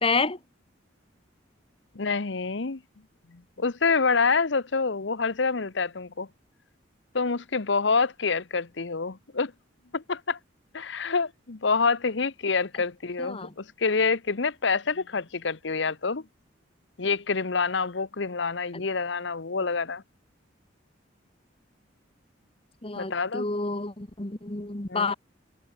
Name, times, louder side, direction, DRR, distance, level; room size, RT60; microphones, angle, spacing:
voice 1, 0.0-0.4 13.2-13.5 18.7-18.8 22.8-25.1, left 3 dB, 30° left, 1.5 m, -29 dB
voice 2, 1.9-2.8 3.3-6.3 7.1-9.5 9.9-10.4 10.7-16.2 17.0-20.0 23.0-23.5 24.9-25.1, left 4 dB, 65° left, 0.9 m, -27 dB
head